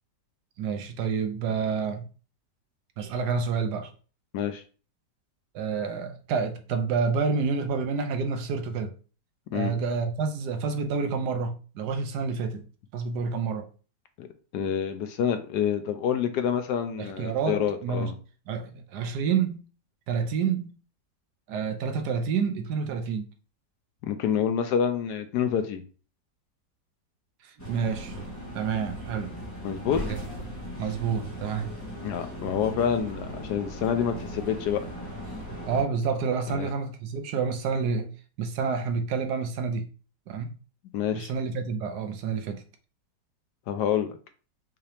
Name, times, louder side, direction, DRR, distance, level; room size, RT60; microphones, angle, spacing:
voice 1, 0.6-2.0 3.0-3.9 5.5-8.9 9.5-12.6 12.9-13.7 17.0-18.1 18.5-19.6 20.1-20.7 21.5-23.3 27.4-28.2 28.5-29.3 30.1-30.2 30.8-31.8 35.7-38.1 38.4-39.9 40.3-40.5 41.1-42.6, right 5 dB, 70° right, 1.2 m, -28 dB
voice 2, 14.5-18.1 24.0-25.8 29.6-30.0 32.0-34.8 36.5-36.7 40.9-41.3 43.7-44.1, left 8 dB, 70° left, 1.1 m, -27 dB
sound 1, 27.6-35.8, equal, 10° left, 1.2 m, -38 dB
5.6 x 2.8 x 3.3 m
omnidirectional pair, 1.9 m